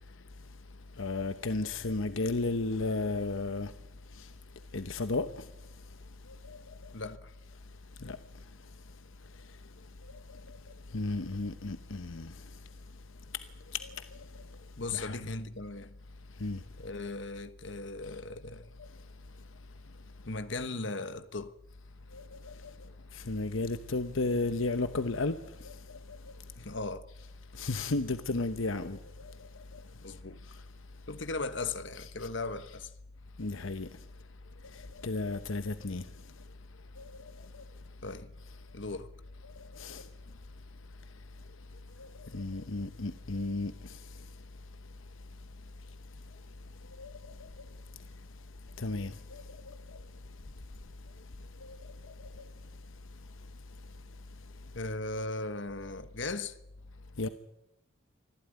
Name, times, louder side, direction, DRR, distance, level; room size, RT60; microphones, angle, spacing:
voice 1, 1.0-3.7 4.7-5.3 6.5-6.6 8.0-8.2 10.9-12.3 13.7-13.9 14.9-15.2 16.4-16.6 22.1-22.5 23.1-25.4 25.6-25.8 27.5-29.0 33.4-33.9 35.0-36.0 37.0-37.1 39.7-40.0 42.0-42.1 42.3-43.9 47.0-47.1 48.8-49.4 51.6-51.8 57.2-57.3, left 3 dB, 80° left, 1.0 m, -33 dB
voice 2, 6.9-7.3 14.8-15.9 16.8-18.7 20.2-21.5 26.6-27.1 29.9-30.4 31.1-32.9 38.0-38.3 38.7-39.1 54.7-56.6, left 3 dB, 65° left, 1.3 m, -37 dB
25.0 x 15.5 x 9.4 m
head